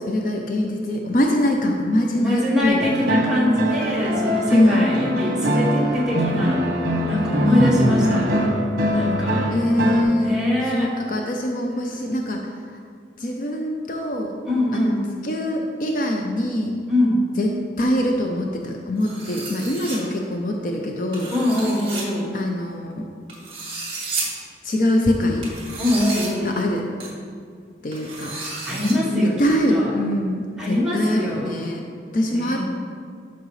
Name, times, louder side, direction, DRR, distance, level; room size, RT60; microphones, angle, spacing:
voice 1, 0.1-3.1 4.5-5.0 7.5-8.3 9.5-10.4 10.7-12.4 13.2-14.3 14.7-14.8 15.2-16.8 17.4-17.5 17.8-21.3 22.3-23.1 24.6-25.5 26.4-26.8 27.8-28.3 29.1-31.8 32.1-32.6, left 1 dB, 50° left, 1 dB, 0.6 m, -23 dB
voice 2, 2.1-6.6 7.1-8.3 8.9-9.4 10.2-11.0 14.5-15.1 16.9-17.2 21.3-22.3 25.8-26.7 28.7-29.9 30.6-31.6 32.3-32.6, left 1 dB, 5° right, -7 dB, 1.9 m, -23 dB
sound 1, 2.8-10.0, equal, 55° right, 1.1 m, -22 dB
sound 2, 19.0-20.0 21.1-22.0 23.3-24.2 25.4-26.3 27.0-27.1 27.9-28.9, right 3 dB, 30° right, 2.0 m, -32 dB
11.5 x 5.9 x 3.2 m, 2.1 s
head